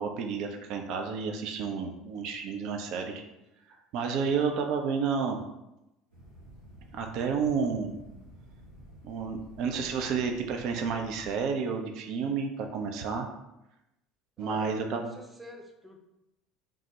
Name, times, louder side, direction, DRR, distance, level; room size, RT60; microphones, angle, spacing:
voice 1, 0.0-3.2 3.9-5.4 6.9-8.0 9.0-13.3 14.4-15.1, right 5 dB, 55° right, 4 dB, 0.3 m, -31 dB
sound 1, 6.1-11.4, right 1 dB, 90° right, 1.0 m, -51 dB
voice 2, 14.4-16.0, right 1 dB, 10° right, 2 dB, 0.6 m, -47 dB
3.4 x 2.1 x 2.8 m, 0.91 s
figure-of-eight pair, 65°, 0 cm